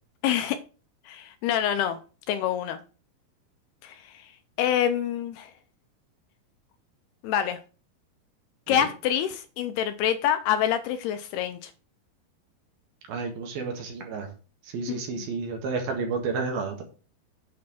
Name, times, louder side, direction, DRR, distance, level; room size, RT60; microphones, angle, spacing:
voice 1, 0.2-0.6 1.1-2.0 2.3-2.8 3.8-4.3 4.6-5.5 7.2-7.6 8.7-11.7 14.9-15.3, left 10 dB, 80° left, 2.5 m, -26 dB
voice 2, 13.1-14.3 14.6-16.8, right 4 dB, 65° right, 3.4 m, -31 dB
8.4 x 4.5 x 7.2 m
omnidirectional pair, 4.9 m